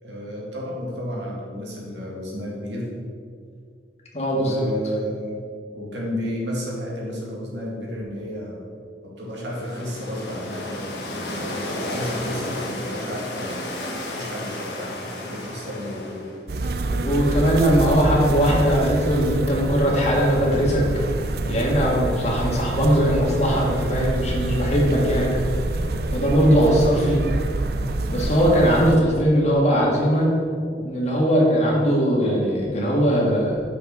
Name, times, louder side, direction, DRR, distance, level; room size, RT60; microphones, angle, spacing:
voice 1, 0.0-2.9 4.3-8.6 9.0-13.7 14.1-16.2 21.2-21.5 22.1-22.4 25.2-25.5 30.7-30.8, equal, 80° right, -3 dB, 2.2 m, -32 dB
voice 2, 4.1-4.6 16.9-20.8 21.5-25.4 26.1-27.2 28.1-30.3 30.8-33.6, equal, 40° left, -3 dB, 1.7 m, -20 dB
sound 1, 9.3-16.4, left 1 dB, 70° left, 1.4 m, -32 dB
sound 2, 16.5-29.0, right 2 dB, 60° right, 0.5 m, -26 dB
6.1 x 6.0 x 6.1 m, 2.2 s
head